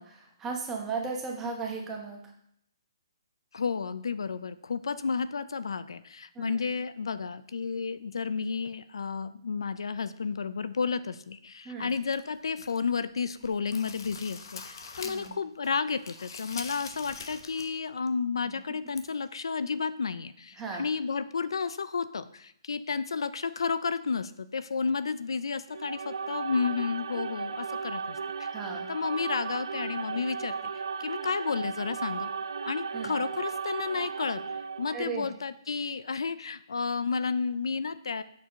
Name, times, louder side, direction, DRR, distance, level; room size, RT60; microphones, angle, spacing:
voice 1, 0.0-2.3 6.3-6.6 11.6-11.9 15.0-15.4 18.4-18.8 20.6-20.9 28.5-28.9 32.9-33.2 34.9-35.3, right 4 dB, 10° right, 0 dB, 1.1 m, -36 dB
voice 2, 3.5-28.5 28.9-32.3 32.6-34.4 34.8-38.2, left 5 dB, 85° left, 14 dB, 0.4 m, -32 dB
sound 1, 11.9-12.9 13.3-15.4 15.6-17.8 18.1-18.2 19.0-19.1, left 5 dB, 60° left, 0.8 m, -44 dB
sound 2, 25.7-35.2, right 5 dB, 85° right, 0.4 m, -35 dB
6.7 x 4.5 x 5.1 m, 0.72 s
hypercardioid pair, 160°, 3 cm